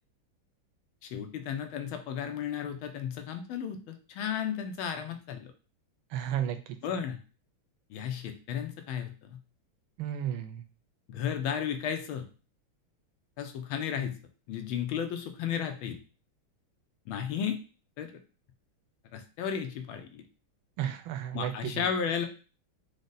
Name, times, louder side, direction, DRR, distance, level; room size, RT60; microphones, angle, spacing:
voice 1, 1.0-5.5 6.8-7.2 7.9-9.4 11.1-12.3 13.4-14.2 14.5-16.0 17.1-17.6 18.0-18.1 19.1-20.2 21.3-22.3, left 8 dB, 80° left, 6 dB, 1.4 m, -34 dB
voice 2, 6.1-6.6 10.0-10.6 20.8-21.8, right 10 dB, 75° right, 7 dB, 1.3 m, -33 dB
5.0 x 2.1 x 3.9 m, 0.35 s
omnidirectional pair, 2.4 m